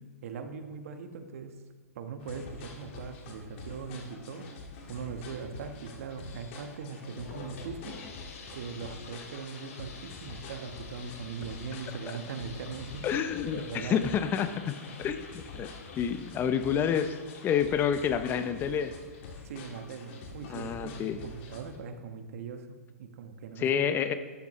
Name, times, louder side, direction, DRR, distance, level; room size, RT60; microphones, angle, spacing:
voice 1, 0.2-1.5 1.9-4.5 4.9-8.0 8.5-13.1 13.5-14.1 19.4-23.8, right 5 dB, 60° right, 7 dB, 1.3 m, -40 dB
sound 1, 2.2-21.8, left 4 dB, 50° left, 2.1 m, -47 dB
sound 2, 6.9-19.4, left 4 dB, 65° left, 2.5 m, -49 dB
voice 2, 13.0-15.7 16.0-17.2 17.4-18.9 20.5-21.2 23.6-24.1, left 8 dB, 25° left, 11 dB, 0.7 m, -29 dB
13.0 x 10.5 x 3.2 m, 1.4 s
hypercardioid pair, 125°, 8 cm